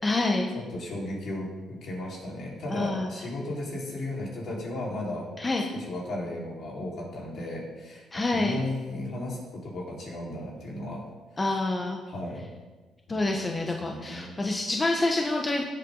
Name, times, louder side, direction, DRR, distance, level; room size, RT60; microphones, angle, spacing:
voice 1, 0.0-0.5 2.7-3.1 5.4-5.6 8.1-8.6 11.4-12.0 13.1-15.6, left 2 dB, 25° left, 2 dB, 1.2 m, -27 dB
voice 2, 0.5-5.3 5.7-11.0 11.4-11.6 12.1-12.5 13.1-14.3, left 1 dB, 65° left, -4 dB, 4.5 m, -35 dB
16.5 x 8.0 x 4.0 m, 1.3 s
cardioid pair, 90°, 0 cm